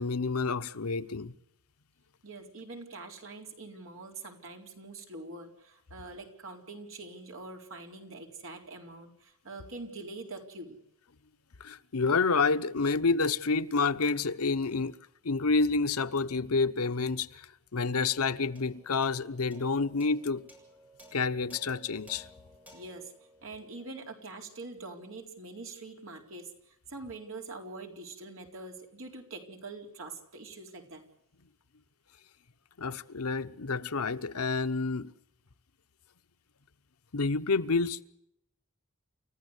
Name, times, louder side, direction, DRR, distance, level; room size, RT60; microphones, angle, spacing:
voice 1, 0.0-1.3 11.6-15.0 15.2-17.5 17.7-20.4 21.1-22.3 32.8-35.1 37.1-38.0, left 4 dB, 85° left, 1.0 m, -29 dB
voice 2, 2.2-10.8 22.7-31.0, right 3 dB, 60° right, 4.2 m, -44 dB
sound 1, 18.1-24.7, equal, 5° right, 7.2 m, -57 dB
29.5 x 14.5 x 8.1 m
head